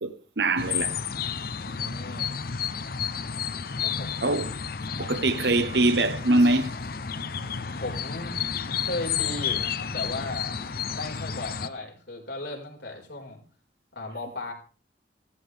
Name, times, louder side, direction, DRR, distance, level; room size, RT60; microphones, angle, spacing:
voice 1, 0.0-0.9 4.2-4.5 5.0-6.7, right 2 dB, 70° right, 1.1 m, -23 dB
sound 1, 0.6-11.7, left 7 dB, 55° left, 0.7 m, -31 dB
voice 2, 1.6-2.4 3.8-4.2 7.8-8.4 8.7-13.4 13.9-14.5, left 2 dB, 80° left, 4.7 m, -36 dB
15.0 x 14.0 x 3.4 m
head